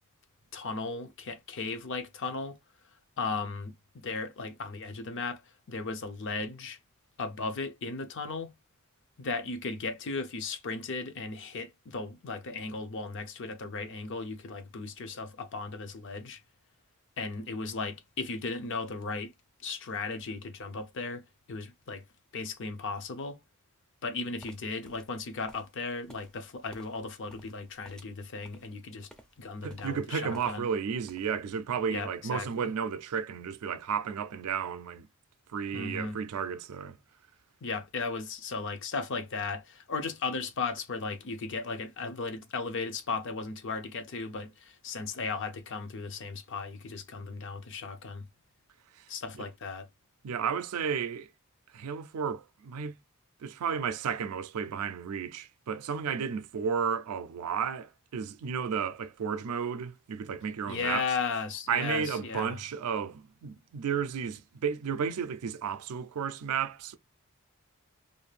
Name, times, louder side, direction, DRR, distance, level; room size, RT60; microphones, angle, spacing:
voice 1, 0.5-2.6 3.2-5.4 5.7-6.8 7.2-8.5 9.2-16.4 17.2-19.3 19.6-22.0 22.3-23.4 24.0-29.1 29.4-30.7 31.9-32.7 35.7-36.2 37.6-48.3 49.1-49.9 60.7-62.6, left 4 dB, 55° left, 0.5 m, -36 dB
sound 1, 24.4-30.8 31.0-31.6, equal, 5° left, 0.4 m, -56 dB
voice 2, 29.6-35.1 35.5-37.0 49.4-49.5 50.2-51.3 51.7-53.0 53.4-61.0 61.7-67.0, right 7 dB, 85° right, 0.4 m, -33 dB
2.6 x 2.4 x 3.2 m
head